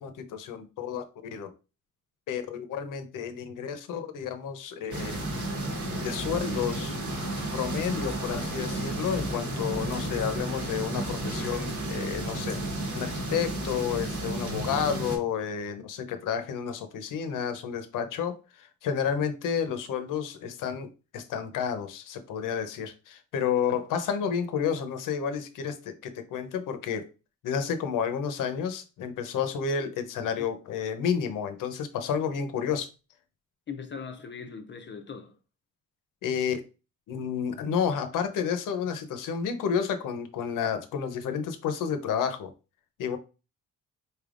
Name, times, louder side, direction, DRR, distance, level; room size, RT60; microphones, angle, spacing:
voice 1, 0.0-1.0 1.3-1.5 2.3-5.2 6.0-7.0 7.5-12.6 12.9-20.9 21.1-27.1 27.4-32.9 36.2-36.6 37.1-42.5 43.0-43.2, left 7 dB, 85° left, 0.7 m, -31 dB
sound 1, 4.9-15.2, right 1 dB, 70° right, 1.4 m, -32 dB
voice 2, 33.7-35.4, left 6 dB, 35° left, 0.5 m, -40 dB
4.4 x 3.4 x 2.5 m
cardioid pair, 100°, 31 cm